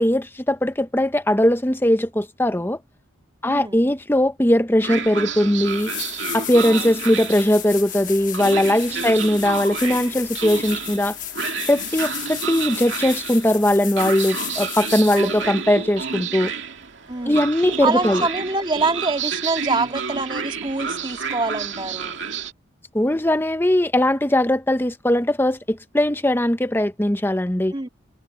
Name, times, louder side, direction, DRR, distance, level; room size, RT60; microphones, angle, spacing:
voice 1, 0.0-2.8 3.4-5.9 6.3-11.2 11.7-16.5 17.2-18.3 22.9-27.7, left 1 dB, 10° left, 0.8 m, -20 dB
voice 2, 3.4-3.8 6.6-6.9 8.9-9.3 15.1-15.5 17.1-17.4 17.8-22.2 27.7-27.9, right 3 dB, 25° right, 2.4 m, -26 dB
Train, 4.8-22.5, right 6 dB, 70° right, 2.2 m, -30 dB
sound 1, 5.2-5.3 5.7-15.4 18.2-18.3, left 12 dB, 45° left, 1.4 m, -34 dB
head